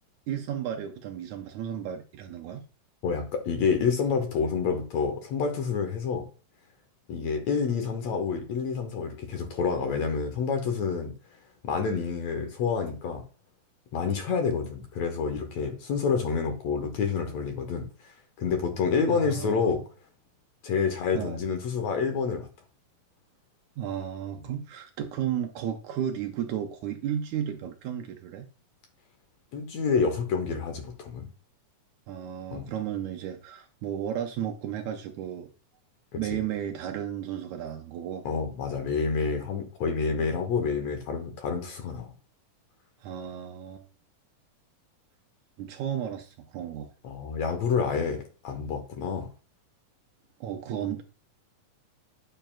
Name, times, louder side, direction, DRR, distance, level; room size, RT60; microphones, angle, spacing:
voice 1, 0.3-2.6 19.1-19.8 21.1-21.4 23.8-28.5 32.1-35.5 36.2-38.3 43.0-43.8 45.6-46.9 50.4-51.0, right 9 dB, 80° right, 1.8 m, -33 dB
voice 2, 3.0-6.2 7.1-11.1 11.6-13.2 13.9-17.9 18.4-19.8 20.6-22.5 24.4-24.5 29.5-31.3 32.5-32.7 36.1-36.2 38.3-42.1 47.0-49.3, left 5 dB, 65° left, 2.0 m, -28 dB
8.9 x 5.6 x 2.4 m
omnidirectional pair, 3.7 m